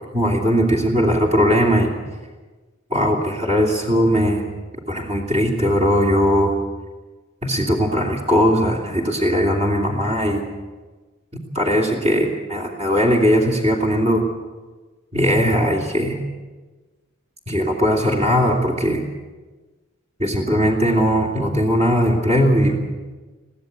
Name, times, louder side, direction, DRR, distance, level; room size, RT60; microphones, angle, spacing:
voice 1, 0.1-1.9 2.9-4.5 4.9-6.5 7.4-10.5 11.5-14.2 15.1-16.2 17.5-19.1 20.2-22.8, equal, 30° right, -1 dB, 2.8 m, -19 dB
23.0 x 16.0 x 8.2 m, 1.3 s
head